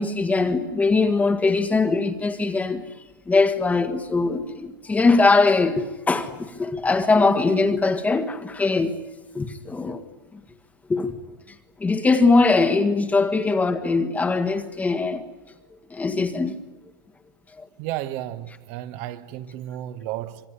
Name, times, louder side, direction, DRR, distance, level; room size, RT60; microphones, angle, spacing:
voice 1, 0.0-2.8 3.3-9.0 9.3-10.0 10.9-11.1 11.8-15.3 15.9-16.6 17.6-17.7, left 3 dB, 15° left, 1.8 m, -21 dB
voice 2, 17.8-20.4, right 13 dB, 55° right, 1.9 m, -33 dB
25.5 x 22.5 x 9.8 m
supercardioid pair, 120°, 11 cm